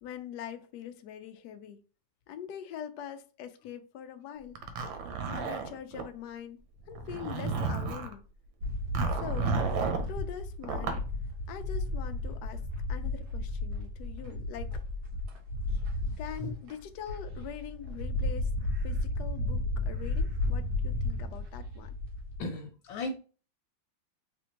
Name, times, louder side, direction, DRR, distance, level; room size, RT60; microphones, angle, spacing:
voice 1, 0.0-1.8 2.3-4.6 5.3-8.2 9.1-9.6 10.0-11.0 11.5-14.8 16.2-18.5 18.8-21.9, left 9 dB, 75° left, 1.0 m, -43 dB
Zipper (clothing), 4.6-6.1 6.9-8.1 8.9-10.1 10.6-11.0, right 5 dB, 85° right, 1.5 m, -32 dB
sound 1, 8.6-22.4, left 2 dB, 60° right, 1.4 m, -33 dB
voice 2, 22.4-23.2, left 2 dB, 90° left, 1.5 m, -35 dB
3.5 x 3.4 x 2.8 m
omnidirectional pair, 2.1 m